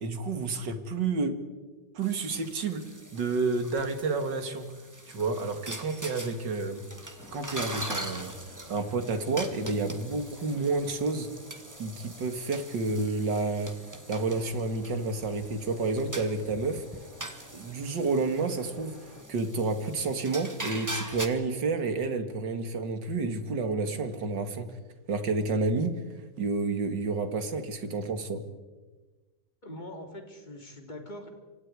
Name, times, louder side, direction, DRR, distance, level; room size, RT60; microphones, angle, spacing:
voice 1, 0.0-1.3 1.9-2.8 3.1-4.7 5.1-6.8 7.3-11.3 11.8-13.7 14.1-16.8 17.5-19.0 19.3-24.7 25.1-25.9 26.4-28.4, right 3 dB, 80° right, 8 dB, 2.6 m, -30 dB
sound 1, 2.0-21.3, right 1 dB, 10° right, 1.8 m, -42 dB
sound 2, 7.1-19.2, left 1 dB, 50° left, 5.1 m, -53 dB
voice 2, 29.6-31.3, left 1 dB, 25° left, 3 dB, 3.3 m, -42 dB
27.5 x 25.5 x 4.9 m, 1.3 s
omnidirectional pair, 1.9 m